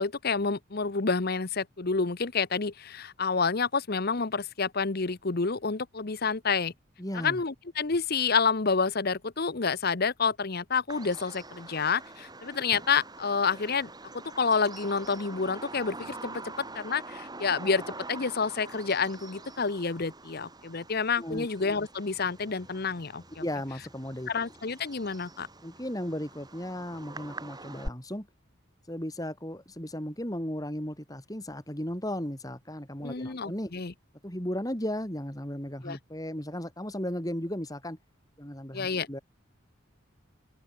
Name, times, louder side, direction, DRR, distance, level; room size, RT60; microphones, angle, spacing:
voice 1, 0.0-6.7 7.2-23.2 24.3-25.5 33.0-33.9 35.8-36.0 38.7-39.1, left 5 dB, 45° left, 0.9 m, -29 dB
voice 2, 7.0-7.4 21.2-21.5 23.4-24.3 25.6-28.3 28.9-33.7 34.2-38.0 38.4-39.2, equal, 15° left, 4.0 m, -35 dB
Bird vocalization bird call bird song, 10.9-27.9, right 2 dB, 20° right, 7.5 m, -45 dB
open air
head